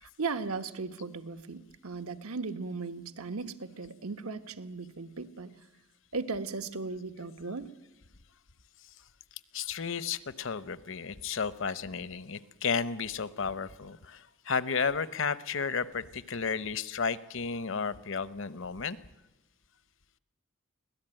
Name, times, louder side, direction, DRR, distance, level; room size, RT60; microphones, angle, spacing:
voice 1, 0.0-5.5 6.1-7.7, right 4 dB, 90° right, 9 dB, 1.2 m, -37 dB
voice 2, 9.5-19.0, left 5 dB, 60° left, 16 dB, 0.8 m, -33 dB
24.0 x 17.5 x 9.0 m, 1.1 s
head